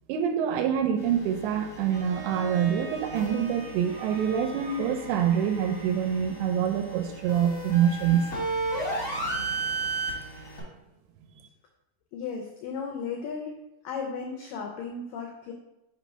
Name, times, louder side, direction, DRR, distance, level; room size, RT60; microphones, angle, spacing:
voice 1, 0.1-8.2, right 8 dB, 80° right, 6 dB, 2.5 m, -26 dB
sound 1, 1.0-10.6, right 2 dB, 55° left, 0.9 m, -35 dB
Bowed string instrument, 1.9-6.8, right 2 dB, 65° right, 2.2 m, -43 dB
voice 2, 12.1-13.6 13.8-15.5, left 5 dB, 85° left, 1 dB, 1.9 m, -35 dB
5.9 x 3.1 x 5.4 m, 0.93 s
omnidirectional pair, 4.7 m